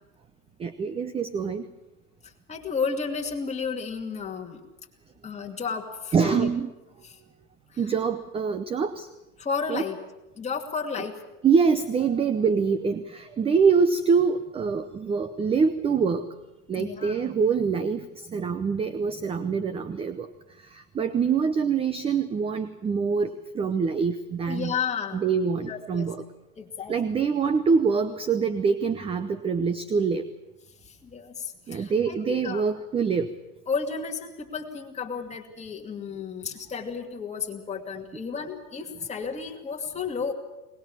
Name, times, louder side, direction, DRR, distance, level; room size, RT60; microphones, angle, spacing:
voice 1, 0.6-1.6 6.1-6.7 7.8-9.1 9.7-9.8 11.4-16.3 16.7-18.0 18.3-20.3 20.7-24.7 25.1-26.2 26.9-30.2 31.7-33.3, right 5 dB, 15° right, 12 dB, 0.7 m, -25 dB
voice 2, 2.2-4.6 5.2-6.5 7.0-7.2 7.7-7.8 9.4-10.0 10.4-11.2 16.8-17.3 21.0-21.2 24.5-25.3 25.6-26.1 26.6-27.0 30.8-32.6 33.7-40.3, left 5 dB, 15° left, 1 dB, 2.6 m, -33 dB
22.0 x 20.0 x 7.3 m, 1.0 s
hypercardioid pair, 120°, 46 cm